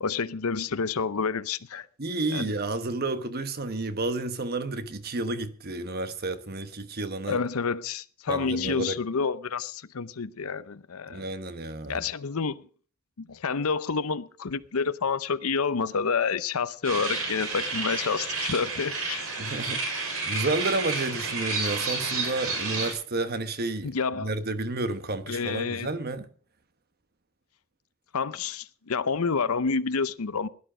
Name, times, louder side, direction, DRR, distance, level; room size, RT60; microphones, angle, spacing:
voice 1, 0.0-1.9 2.3-2.5 7.3-11.2 11.9-12.6 13.2-19.3 23.8-24.3 25.3-25.9 28.1-30.5, left 5 dB, 80° left, 0.7 m, -29 dB
voice 2, 2.0-7.4 8.3-9.0 11.1-12.0 19.4-26.3, right 2 dB, 45° right, 1.1 m, -31 dB
sound 1, 16.8-22.9, right 3 dB, 80° right, 5.3 m, -31 dB
16.5 x 11.5 x 5.0 m
head